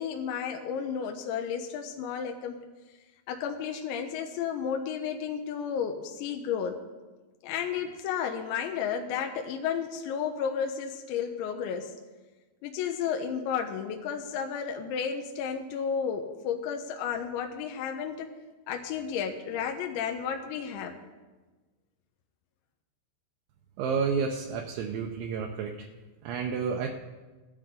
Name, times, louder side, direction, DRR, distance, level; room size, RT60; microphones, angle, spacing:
voice 1, 0.0-2.6 3.3-6.8 7.4-11.9 12.6-18.3 18.7-20.9, left 7 dB, 80° left, 4 dB, 2.8 m, -32 dB
voice 2, 23.8-25.8 26.2-26.9, right 6 dB, 80° right, 2 dB, 3.0 m, -30 dB
17.0 x 12.0 x 3.8 m, 1.3 s
omnidirectional pair, 5.7 m